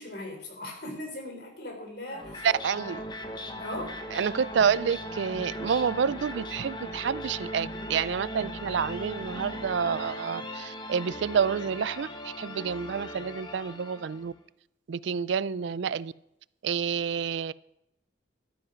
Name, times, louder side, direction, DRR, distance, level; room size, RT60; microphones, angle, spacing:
voice 1, 0.0-2.5 3.6-4.0, left 1 dB, 60° left, 3 dB, 3.5 m, -39 dB
sound 1, 2.1-14.3, equal, 25° left, 1.1 m, -38 dB
voice 2, 2.4-3.0 4.1-14.3 14.9-16.1 16.6-17.5, right 7 dB, 70° right, 20 dB, 0.4 m, -28 dB
12.5 x 9.9 x 5.8 m, 0.82 s
head